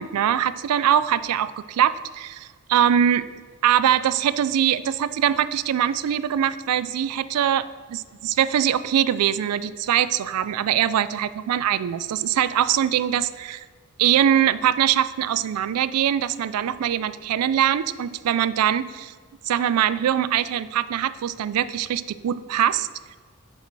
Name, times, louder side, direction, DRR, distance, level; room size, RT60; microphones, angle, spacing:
voice 1, 0.0-3.3 3.6-13.6 14.0-19.1 19.4-22.9, right 10 dB, 90° right, 16 dB, 0.3 m, -22 dB
6.5 x 5.1 x 4.6 m, 1.5 s
head